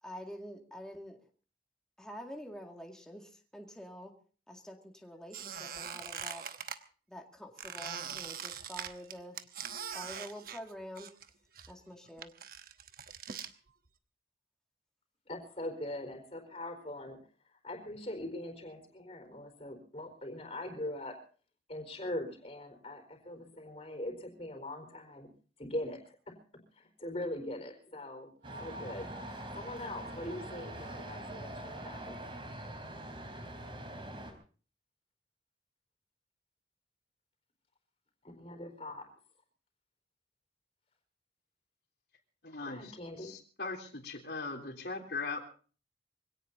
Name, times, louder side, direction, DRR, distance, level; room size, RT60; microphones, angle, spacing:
voice 1, 0.0-1.3 2.0-4.1 4.5-6.5 7.1-9.4 9.9-11.1 11.7-12.3, equal, 5° left, 1 dB, 2.1 m, -47 dB
Squeak, 5.3-6.8 7.6-11.3 11.6-13.5, right 7 dB, 55° right, 1.0 m, -42 dB
voice 2, 15.3-17.2 17.6-21.2 21.7-25.3 25.6-26.3 26.7-28.3 28.6-29.1 29.5-32.2 38.2-39.1 42.6-43.4, left 1 dB, 35° left, 5 dB, 4.4 m, -41 dB
sound 1, 28.4-34.3, right 1 dB, 30° right, 3.8 m, -44 dB
sound 2, 28.4-32.2, right 1 dB, 85° right, 3.8 m, -51 dB
voice 3, 42.4-42.8 43.2-45.4, left 3 dB, 70° left, 3 dB, 3.3 m, -39 dB
25.0 x 17.5 x 2.8 m, 0.40 s
head